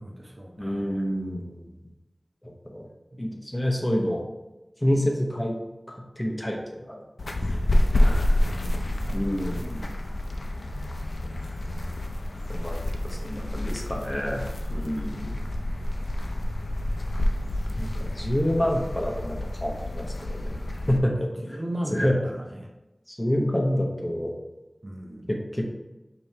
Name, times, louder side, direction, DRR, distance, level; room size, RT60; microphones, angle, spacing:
voice 1, 0.0-1.0 3.1-3.4 8.4-9.0 11.2-11.9 15.3-15.7 21.1-22.7 24.8-25.3, right 1 dB, 50° right, 1 dB, 0.6 m, -38 dB
voice 2, 0.6-1.6 2.6-2.9 3.2-4.2 4.8-5.5 5.9-7.0 9.1-9.9 12.5-12.8 13.1-15.4 17.8-19.4 19.6-20.6 20.9-21.1 21.4-21.6 21.9-22.1 23.1-24.3 25.3-25.6, equal, 20° left, 0 dB, 1.0 m, -27 dB
sound 1, 7.2-21.0, left 1 dB, 80° left, 0.4 m, -28 dB
5.2 x 2.9 x 3.4 m, 1.0 s
wide cardioid pair, 50°, 0 cm